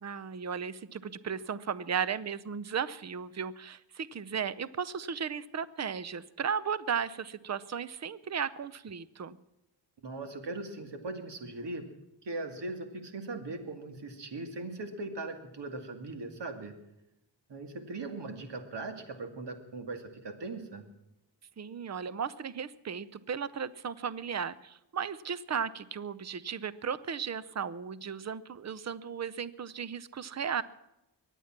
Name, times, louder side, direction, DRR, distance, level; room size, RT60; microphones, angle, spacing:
voice 1, 0.0-9.4 21.6-30.6, right 7 dB, 35° right, 17 dB, 0.7 m, -35 dB
voice 2, 10.0-11.8 12.2-16.7 17.5-20.9, right 2 dB, 65° right, 7 dB, 2.5 m, -39 dB
23.5 x 9.2 x 5.9 m, 0.90 s
wide cardioid pair, 110°, 45 cm